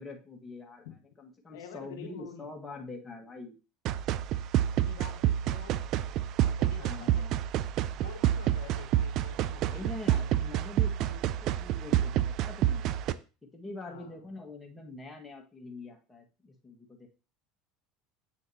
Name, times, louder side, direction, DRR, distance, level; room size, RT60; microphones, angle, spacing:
voice 1, 0.0-3.6 6.8-7.3 9.7-12.9 13.5-17.1, left 2 dB, 15° left, 1 dB, 1.7 m, -44 dB
voice 2, 1.5-2.5 4.8-5.8 6.4-7.2 7.9-9.8 13.9-14.3, left 8 dB, 80° left, 8 dB, 0.8 m, -48 dB
sound 1, 3.9-13.1, right 12 dB, 55° right, 0.4 m, -28 dB
7.5 x 6.4 x 2.8 m, 0.32 s
hypercardioid pair, 85°, 0 cm